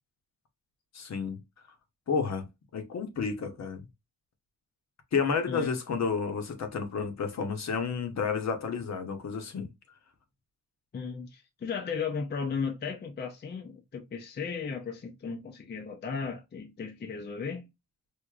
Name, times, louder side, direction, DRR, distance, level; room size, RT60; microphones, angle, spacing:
voice 1, 0.9-1.4 2.1-2.5 2.7-3.9 5.1-9.7, left 5 dB, 55° left, 0.8 m, -31 dB
voice 2, 10.9-17.7, left 5 dB, 30° left, 0.5 m, -35 dB
4.7 x 2.6 x 2.3 m
wide cardioid pair, 140°, 33 cm